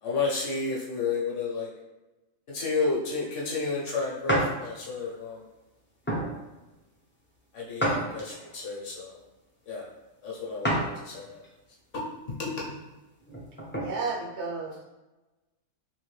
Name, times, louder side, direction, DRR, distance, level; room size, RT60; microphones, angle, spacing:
voice 1, 0.0-1.7 2.5-5.4 7.5-9.2 9.7-9.9 10.2-11.4 11.9-12.0 12.3-12.8, left 4 dB, 65° left, -4 dB, 1.2 m, -31 dB
sound 1, 4.3-4.6 5.1-5.3 6.0-6.3 7.8-8.5 10.6-10.9 11.4-11.5 13.2-13.9, right 1 dB, 15° left, 0.4 m, -28 dB
voice 2, 13.8-14.8, right 4 dB, 60° right, -1 dB, 0.9 m, -32 dB
3.4 x 2.6 x 3.2 m, 1.1 s
omnidirectional pair, 1.4 m